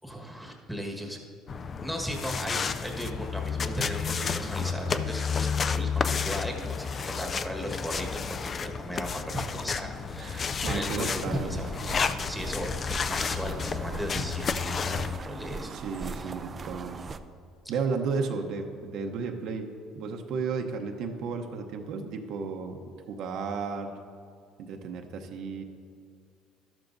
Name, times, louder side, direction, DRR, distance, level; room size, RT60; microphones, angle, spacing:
voice 1, 0.0-1.2 1.8-11.7 12.2-12.7 13.1-15.7 16.0-16.3, equal, ahead, 0 dB, 1.4 m, -36 dB
sound 1, 1.5-15.2, left 6 dB, 35° left, 0.4 m, -31 dB
voice 2, 10.2-11.6 15.7-17.0 17.7-19.7 19.9-23.9 24.6-25.6, right 5 dB, 65° right, 4 dB, 0.8 m, -33 dB
sound 2, 11.0-17.2, right 4 dB, 30° right, 0.4 m, -40 dB
12.5 x 12.0 x 2.6 m, 2.2 s
cardioid pair, 110°, 0 cm